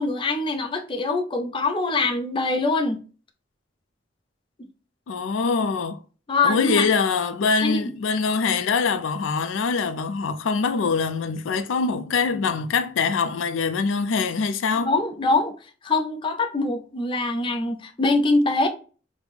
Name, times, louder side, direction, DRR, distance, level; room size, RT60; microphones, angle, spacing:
voice 1, 0.0-3.0 6.3-6.9 7.6-7.8 14.8-15.5 15.8-18.7, left 3 dB, 25° left, 0.4 m, -23 dB
voice 2, 5.1-6.0 6.4-14.9, left 5 dB, 85° left, 0.4 m, -24 dB
4.7 x 2.0 x 3.3 m
head